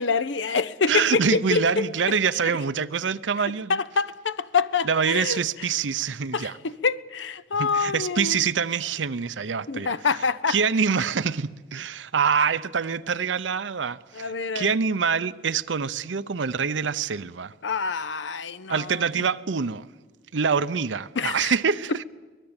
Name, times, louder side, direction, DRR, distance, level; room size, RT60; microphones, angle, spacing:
voice 1, 0.0-1.8 3.7-5.4 6.3-8.4 9.7-10.6 14.1-14.8 17.6-19.0 21.2-21.5, left 5 dB, 80° left, 0.7 m, -26 dB
voice 2, 0.9-3.8 4.8-6.5 7.6-9.9 10.5-17.5 18.7-19.9 20.3-22.0, right 6 dB, 85° right, 0.7 m, -25 dB
24.0 x 19.5 x 8.8 m
head